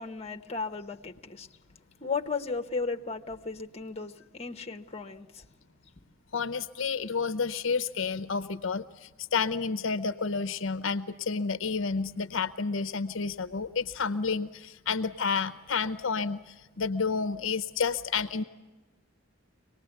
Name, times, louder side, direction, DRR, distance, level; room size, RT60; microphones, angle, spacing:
voice 1, 0.0-1.5 2.0-5.5, left 4 dB, 30° left, 0.9 m, -35 dB
voice 2, 6.3-18.4, left 5 dB, 60° left, 0.7 m, -30 dB
25.0 x 19.5 x 7.9 m
head